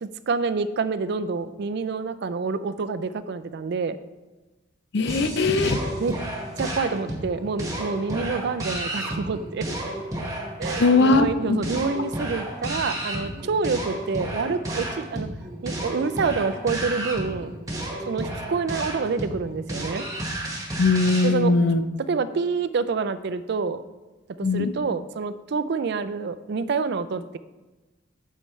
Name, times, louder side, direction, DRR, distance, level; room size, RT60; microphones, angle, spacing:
voice 1, 0.0-4.0 6.0-6.1 6.6-9.7 10.6-15.3 15.6-17.5 18.1-20.0 21.2-21.5 22.1-23.8 24.4-27.4, right 4 dB, 60° right, 13 dB, 0.4 m, -27 dB
voice 2, 4.9-5.8 10.8-11.3 20.8-21.8 24.4-24.7, left 3 dB, 60° left, 10 dB, 0.6 m, -20 dB
sound 1, 5.1-21.3, right 1 dB, 20° right, 1.4 m, -32 dB
8.9 x 6.5 x 3.2 m, 1.1 s
head